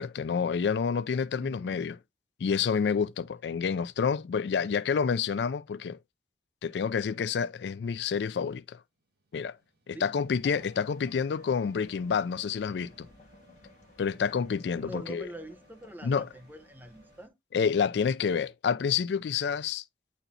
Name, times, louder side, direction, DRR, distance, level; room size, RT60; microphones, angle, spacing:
voice 1, 0.0-2.0 2.4-6.0 6.6-8.8 9.3-9.5 9.9-13.1 14.0-15.3 16.0-16.3 17.5-19.8, left 6 dB, 70° left, 0.4 m, -28 dB
voice 2, 1.4-2.0 9.9-10.1 14.8-17.3, right 1 dB, 10° right, 0.8 m, -45 dB
sound 1, 9.0-17.3, right 2 dB, 65° right, 1.4 m, -62 dB
sound 2, 10.2-17.3, left 2 dB, 45° left, 1.4 m, -56 dB
8.9 x 4.2 x 2.7 m
head